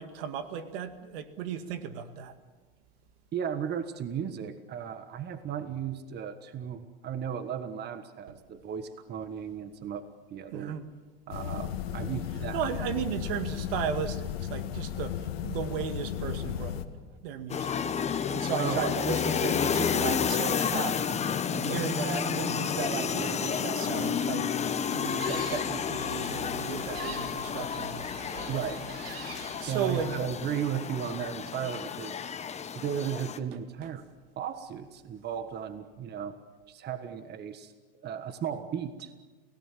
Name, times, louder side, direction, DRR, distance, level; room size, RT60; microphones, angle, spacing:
voice 1, 0.0-2.3 10.5-10.8 12.5-16.8 17.2-17.8 18.3-21.0 21.5-28.1 29.6-30.1 33.8-33.9, right 8 dB, 70° right, 10 dB, 2.1 m, -35 dB
voice 2, 3.3-10.8 11.3-12.6 18.6-19.0 28.5-28.8 29.7-32.2 32.7-34.1 34.4-36.4 36.7-39.1, right 8 dB, 35° right, 11 dB, 1.5 m, -35 dB
sound 1, 11.3-16.8, left 10 dB, 80° left, 1.8 m, -35 dB
sound 2, 17.5-33.4, left 7 dB, 20° left, 1.3 m, -31 dB
Gull seagull, 24.9-30.0, right 4 dB, 85° right, 5.8 m, -44 dB
29.5 x 17.0 x 7.5 m, 1.3 s
supercardioid pair, 110°, 30 cm